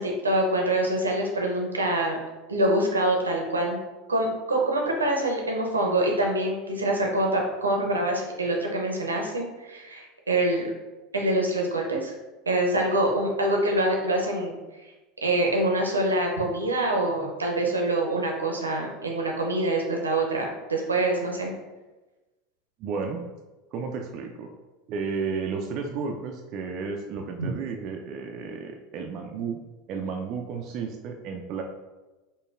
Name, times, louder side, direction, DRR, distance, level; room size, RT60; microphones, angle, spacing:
voice 1, 0.0-2.2 2.5-3.8 4.1-10.7 11.1-12.1 12.5-14.6 15.2-21.5 27.4-27.5, right 1 dB, 85° right, 1 dB, 0.6 m, -25 dB
voice 2, 22.8-23.2 23.7-24.5 24.9-29.6 29.9-31.6, right 5 dB, 50° right, 2 dB, 0.3 m, -32 dB
5.0 x 2.2 x 2.5 m, 1.1 s
figure-of-eight pair, 75°, 0 cm